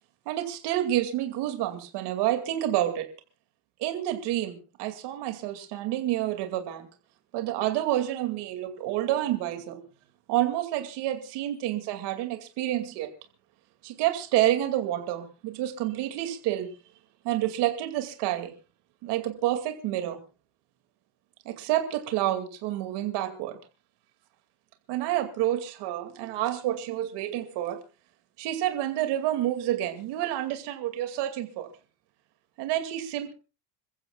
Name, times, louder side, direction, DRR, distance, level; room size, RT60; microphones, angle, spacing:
voice 1, 0.3-3.1 3.8-6.9 7.3-9.8 10.3-13.1 13.8-16.7 17.2-18.5 19.0-20.2 21.4-23.6 24.9-27.8 28.4-31.7 32.6-33.3, right 13 dB, 55° right, 6 dB, 2.5 m, -29 dB
27.5 x 15.0 x 2.4 m, 0.33 s
cardioid pair, 155°, 47 cm